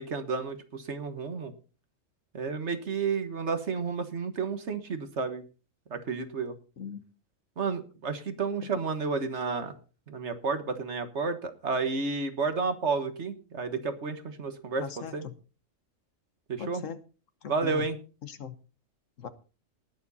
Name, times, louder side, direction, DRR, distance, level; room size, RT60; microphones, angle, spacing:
voice 1, 0.0-1.5 2.3-5.4 5.9-6.5 7.6-9.8 10.1-15.2 16.5-16.8 17.5-18.0, right 4 dB, 60° right, 9 dB, 1.6 m, -31 dB
voice 2, 14.8-15.3 16.6-17.0 17.4-17.9 18.2-18.5 19.2-19.3, left 7 dB, 70° left, 12 dB, 1.4 m, -39 dB
19.0 x 7.2 x 4.1 m, 0.37 s
omnidirectional pair, 1.4 m